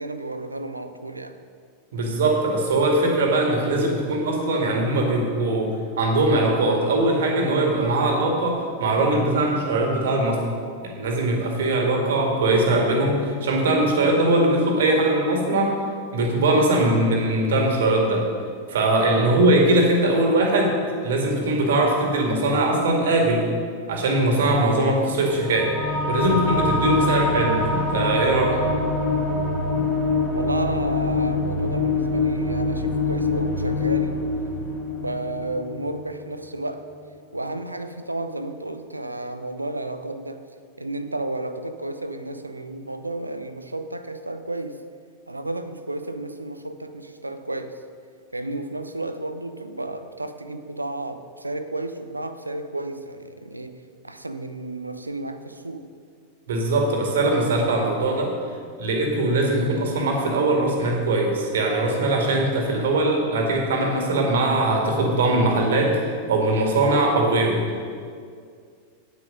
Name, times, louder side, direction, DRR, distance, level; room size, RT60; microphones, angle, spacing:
voice 1, 0.0-1.4 19.2-19.4 26.9-27.1 30.3-34.2 34.9-36.9 37.3-40.4 40.8-44.8 45.3-47.8 48.3-53.8 54.0-55.9, right 2 dB, 85° right, 9 dB, 0.6 m, -32 dB
voice 2, 1.9-10.4 10.8-15.7 16.1-18.2 18.7-20.7 21.0-23.5 23.9-25.7 26.1-28.6 56.5-58.3 58.8-67.6, right 2 dB, 60° right, 1 dB, 1.9 m, -21 dB
sound 1, 25.3-36.2, left 2 dB, 50° left, 2.2 m, -24 dB
9.1 x 8.7 x 5.2 m, 2.2 s
figure-of-eight pair, 90°, 0 cm